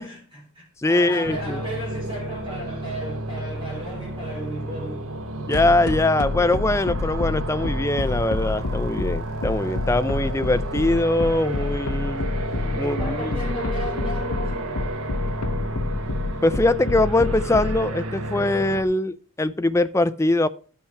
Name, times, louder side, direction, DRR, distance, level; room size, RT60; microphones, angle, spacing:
voice 1, 0.0-5.1 12.8-14.7, equal, 25° right, 4.8 m, -34 dB
voice 2, 0.8-1.6 5.5-12.3 12.6-13.4 16.4-20.5, left 2 dB, 15° left, 0.4 m, -22 dB
sound 1, 1.2-18.8, right 1 dB, 90° right, 1.2 m, -31 dB
sound 2, 5.5-17.8, left 2 dB, 90° left, 0.7 m, -27 dB
12.5 x 5.7 x 4.5 m
head